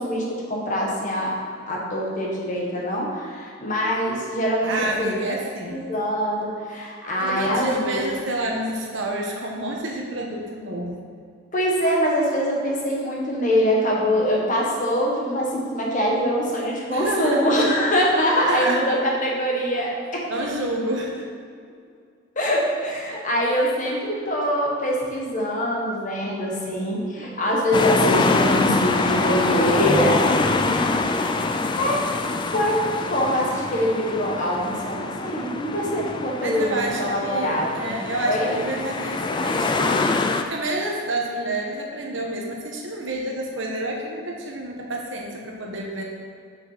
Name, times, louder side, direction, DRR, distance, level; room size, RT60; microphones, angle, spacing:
voice 1, 0.0-1.4 1.7-5.2 5.7-8.0 8.3-8.4 11.5-20.2 22.3-30.9 31.8-32.0 32.5-32.8 33.1-38.6, equal, 40° left, -3 dB, 1.4 m, -24 dB
voice 2, 4.6-5.8 7.2-11.1 16.9-17.6 18.4-18.8 20.3-21.3 30.5-31.1 36.4-40.1 40.5-46.0, right 1 dB, 65° right, 0 dB, 1.2 m, -29 dB
sound 1, 27.7-40.4, left 3 dB, 20° left, 0.3 m, -24 dB
6.0 x 5.5 x 5.7 m, 2.3 s
head